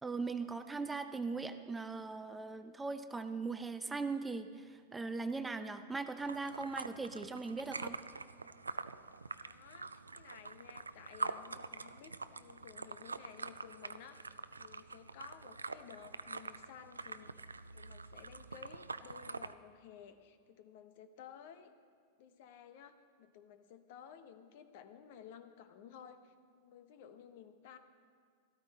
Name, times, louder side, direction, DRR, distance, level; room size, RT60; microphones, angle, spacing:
voice 1, 0.0-8.0, right 4 dB, 10° right, 9 dB, 0.6 m, -39 dB
sound 1, 6.2-19.5, right 4 dB, 85° right, 0.3 m, -45 dB
voice 2, 9.4-17.3 17.7-21.7 22.2-27.8, left 8 dB, 55° left, 10 dB, 0.9 m, -55 dB
13.0 x 13.0 x 4.2 m, 2.1 s
figure-of-eight pair, 95°, 0 cm